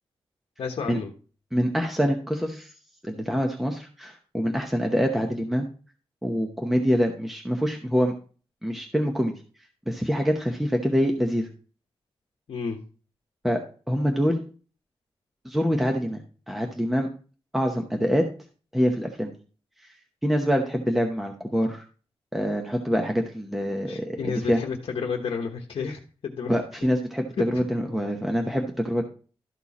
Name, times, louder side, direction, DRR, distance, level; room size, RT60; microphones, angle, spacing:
voice 1, 0.6-1.1 12.5-12.8 23.9-26.5, left 5 dB, 60° left, 1.1 m, -31 dB
voice 2, 1.5-2.7 3.0-5.7 6.2-8.1 8.6-9.3 9.9-11.5 13.4-14.4 15.4-16.2 16.5-17.1 17.5-18.3 18.7-19.3 20.2-21.8 22.3-24.6 26.5-29.0, equal, ahead, 0.8 m, -25 dB
12.5 x 4.5 x 4.2 m
wide cardioid pair, 175°, 10 cm